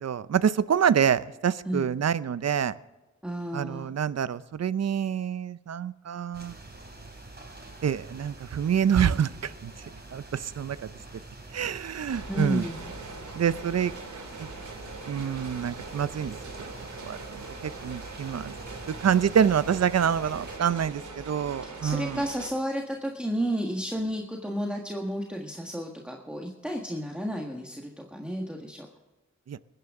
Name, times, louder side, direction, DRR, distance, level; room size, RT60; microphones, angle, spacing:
voice 1, 0.0-2.7 3.5-6.5 7.8-9.7 10.1-10.9 11.5-12.6 13.4-13.9 14.4-14.5 15.1-16.4 17.1-18.5 19.0-22.2 29.5-29.6, right 8 dB, 60° right, 16 dB, 0.6 m, -26 dB
voice 2, 1.6-2.0 3.2-3.9 12.3-12.9 21.6-28.9, equal, 5° right, 0 dB, 1.6 m, -32 dB
sound 1, 6.3-20.6, right 2 dB, 35° right, 3.2 m, -46 dB
sound 2, 12.1-22.5, right 3 dB, 85° right, 2.9 m, -42 dB
20.5 x 10.0 x 3.7 m, 1.1 s
wide cardioid pair, 70°, 29 cm